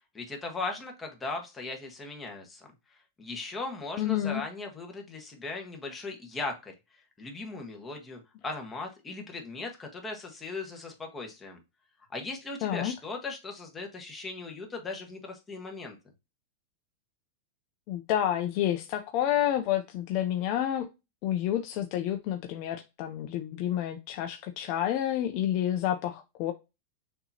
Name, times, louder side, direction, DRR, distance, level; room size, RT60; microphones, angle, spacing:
voice 1, 0.1-2.7 3.2-6.7 7.2-11.6 12.1-16.0, left 3 dB, 15° left, 1.3 m, -38 dB
voice 2, 4.0-4.5 12.6-12.9 17.9-20.9 21.2-26.5, left 11 dB, 45° left, 0.5 m, -29 dB
6.6 x 2.9 x 2.8 m
supercardioid pair, 140°, 0 cm